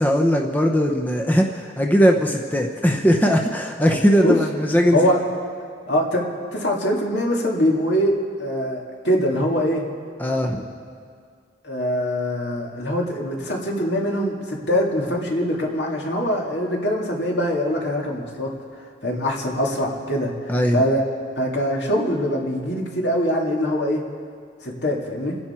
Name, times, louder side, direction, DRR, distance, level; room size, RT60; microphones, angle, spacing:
voice 1, 0.0-5.0 10.2-10.7 20.5-20.8, equal, 10° left, 1 dB, 0.8 m, -19 dB
voice 2, 5.9-9.9 11.6-18.5 19.0-21.0 21.4-24.1 24.6-25.4, equal, 70° left, -1 dB, 2.4 m, -23 dB
28.0 x 10.5 x 4.5 m, 2.2 s
head